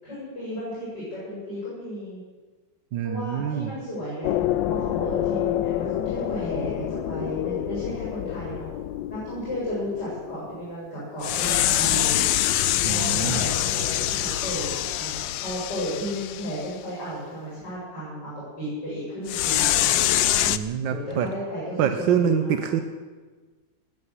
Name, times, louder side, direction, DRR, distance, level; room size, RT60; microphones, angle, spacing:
voice 1, 0.0-2.2 3.0-4.3 4.7-8.7 9.1-12.3 12.9-20.1 20.9-22.7, equal, 65° left, -8 dB, 7.8 m, -34 dB
voice 2, 2.9-3.7 12.8-13.5 20.4-21.3 21.8-22.8, right 8 dB, 85° right, 8 dB, 1.6 m, -25 dB
sound 1, 4.2-10.7 11.2-16.7 19.3-20.6, left 13 dB, 85° left, 1.4 m, -26 dB
19.0 x 9.1 x 8.1 m, 1.3 s
omnidirectional pair, 2.0 m